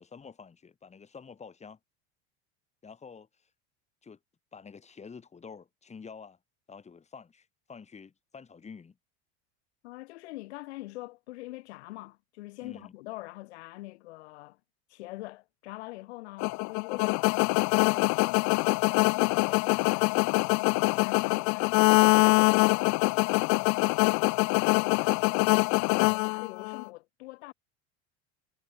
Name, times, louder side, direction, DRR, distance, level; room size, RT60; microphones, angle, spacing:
voice 1, 0.0-1.8 2.8-3.3 4.0-4.2 4.5-6.4 6.7-9.0 12.6-12.9, left 5 dB, 20° left, 7.1 m, -48 dB
voice 2, 9.8-14.6 14.9-27.5, left 20 dB, 90° left, 5.8 m, -43 dB
sound 1, 16.4-26.9, left 29 dB, 60° left, 0.9 m, -24 dB
supercardioid pair, 130°, 32 cm